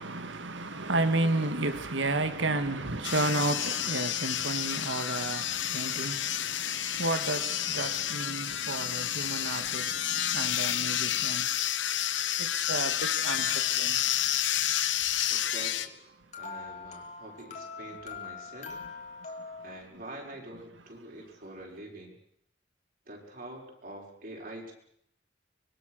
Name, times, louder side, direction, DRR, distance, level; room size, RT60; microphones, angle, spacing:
voice 1, 0.0-11.5 12.4-14.0, right 2 dB, 80° right, 1.9 m, -32 dB
sound 1, 3.0-15.9, left 11 dB, 75° left, 1.2 m, -30 dB
sound 2, 13.2-14.2 15.3-19.8, left 4 dB, 40° left, 3.0 m, -44 dB
voice 2, 15.3-15.9 16.3-18.7 19.3-19.4 19.6-22.1 23.1-24.7, right 1 dB, 50° right, 5.9 m, -45 dB
24.5 x 23.0 x 6.6 m
head